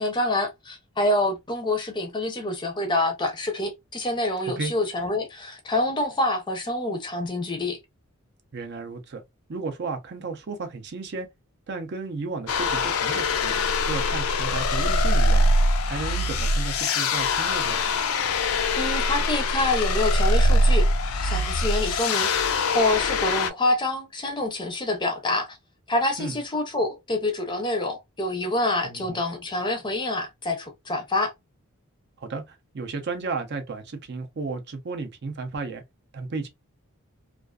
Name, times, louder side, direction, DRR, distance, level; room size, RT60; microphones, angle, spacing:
voice 1, 0.0-7.8 18.7-22.3 22.7-25.6 25.9-31.3, left 2 dB, 20° left, 0.5 m, -26 dB
voice 2, 8.5-9.2 9.5-11.3 11.7-13.6 13.8-15.4 15.9-17.8 26.2-26.4 28.8-29.2 32.2-35.8 36.1-36.5, right 4 dB, 50° right, 0.5 m, -33 dB
sound 1, 12.5-23.5, left 2 dB, 70° left, 0.4 m, -23 dB
2.4 x 2.3 x 2.2 m
head